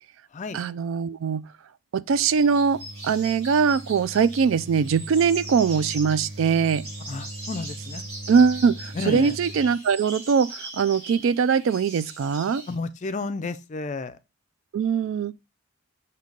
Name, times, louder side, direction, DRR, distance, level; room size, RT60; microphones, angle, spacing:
voice 1, 0.5-1.4 1.9-6.8 8.3-12.6 14.7-15.3, right 6 dB, 60° right, 0.3 m, -22 dB
sound 1, 2.1-9.8, right 1 dB, 75° right, 1.0 m, -41 dB
sound 2, 2.3-12.7, right 2 dB, 30° right, 2.5 m, -41 dB
voice 2, 7.1-8.0 8.9-9.4 12.7-14.2, left 3 dB, 35° left, 0.4 m, -32 dB
6.6 x 2.8 x 5.1 m
head